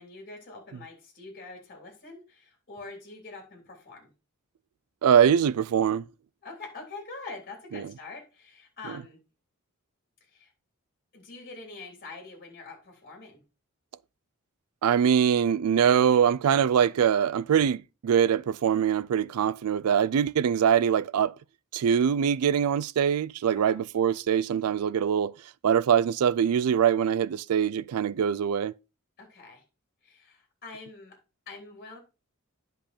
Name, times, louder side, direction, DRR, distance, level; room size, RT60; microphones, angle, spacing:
voice 1, 0.0-4.1 6.4-9.2 10.2-10.5 11.1-13.4 23.5-23.8 29.2-29.6 30.0-31.2 31.4-32.0, left 3 dB, 45° left, 3.3 m, -44 dB
voice 2, 5.0-6.1 14.8-21.3 21.7-25.3 25.6-28.7, right 8 dB, 80° right, 0.4 m, -23 dB
10.0 x 5.4 x 4.3 m
head